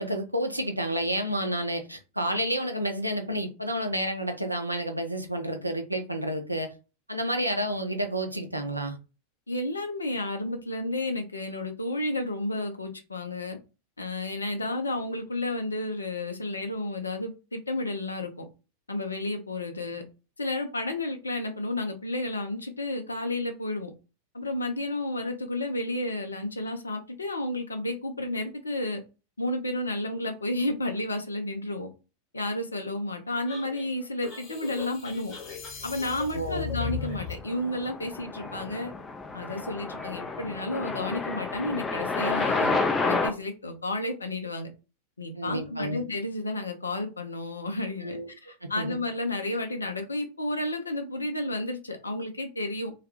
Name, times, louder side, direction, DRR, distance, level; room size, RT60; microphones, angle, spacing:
voice 1, 0.0-6.7 7.1-9.0 36.3-36.7 45.3-46.0 48.0-48.3 48.6-49.0, right 1 dB, 85° right, 5 dB, 0.5 m, -30 dB
voice 2, 9.5-13.6 14.0-18.4 18.9-20.0 20.4-23.9 24.3-29.0 29.4-31.9 32.3-35.3 35.8-38.9 39.3-44.7 45.2-52.9, left 1 dB, 80° left, 5 dB, 0.5 m, -32 dB
sound 1, 33.5-37.4, left 7 dB, 35° left, 1.1 m, -37 dB
sound 2, 37.2-43.3, left 3 dB, 15° left, 0.4 m, -30 dB
2.3 x 2.2 x 2.9 m, 0.31 s
figure-of-eight pair, 90°, 0 cm